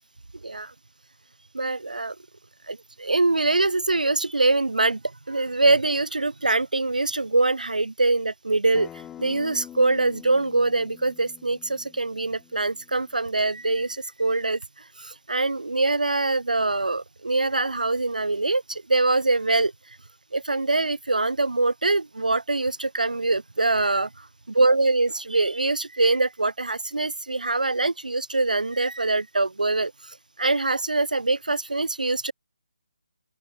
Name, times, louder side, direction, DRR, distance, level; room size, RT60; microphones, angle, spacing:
voice 1, 0.4-0.7 1.5-2.2 2.7-5.0 5.3-8.9 9.2-19.7 20.3-32.3, right 2 dB, 85° right, 5.8 m, -24 dB
Acoustic guitar, 8.7-13.9, left 10 dB, 10° left, 7.5 m, -46 dB
open air
figure-of-eight pair, 155°, 4 cm